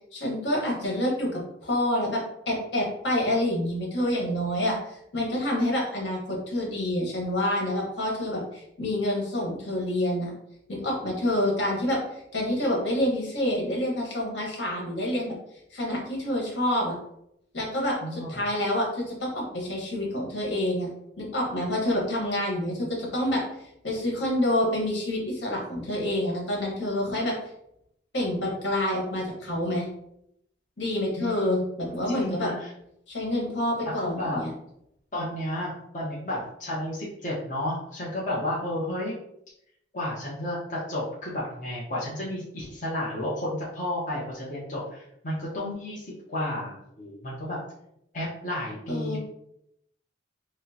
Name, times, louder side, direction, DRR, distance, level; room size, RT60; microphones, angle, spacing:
voice 1, 0.1-2.2 2.5-10.3 10.7-15.3 15.7-16.9 17.5-20.9 21.2-23.4 23.8-27.4 28.1-29.9 30.8-32.5 33.1-34.5 48.9-49.2, left 1 dB, 70° left, -2 dB, 1.4 m, -27 dB
voice 2, 18.0-18.4 22.6-23.1 31.2-31.6 32.1-32.7 34.0-34.4 35.1-39.1 39.9-47.6 48.1-49.2, left 1 dB, 45° left, -6 dB, 0.8 m, -32 dB
6.1 x 2.1 x 2.8 m, 0.77 s
head